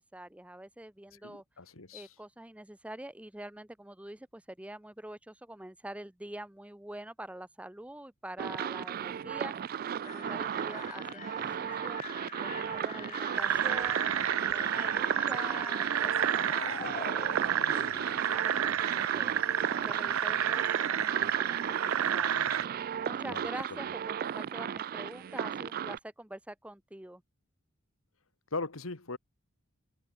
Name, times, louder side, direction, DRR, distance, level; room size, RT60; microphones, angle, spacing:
voice 1, 0.0-1.4 1.9-9.5 10.0-12.0 12.4-14.1 14.5-17.8 18.2-19.3 19.8-27.2, right 1 dB, 5° right, 0.7 m, -46 dB
voice 2, 1.2-2.1 23.3-23.4 23.7-23.8 28.5-29.2, left 3 dB, 85° left, 1.9 m, -39 dB
sound 1, 8.4-26.0, right 8 dB, 45° right, 0.3 m, -35 dB
sound 2, 10.0-18.4, left 7 dB, 35° left, 0.5 m, -45 dB
sound 3, 13.3-22.7, right 9 dB, 85° right, 0.6 m, -30 dB
open air
head